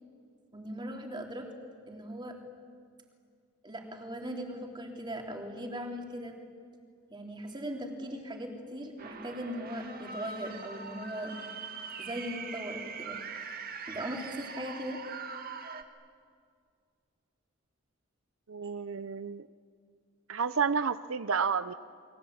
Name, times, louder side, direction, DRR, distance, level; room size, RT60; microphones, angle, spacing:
voice 1, 0.5-1.5 1.9-2.4 3.6-6.4 7.1-11.4 12.0-13.2 13.9-15.0, equal, 25° right, 1 dB, 3.5 m, -39 dB
sound 1, 9.0-15.8, right 5 dB, 45° right, 1.8 m, -42 dB
voice 2, 18.5-19.5 20.3-21.7, right 6 dB, 85° right, 13 dB, 0.7 m, -30 dB
30.0 x 22.5 x 8.7 m, 2.1 s
head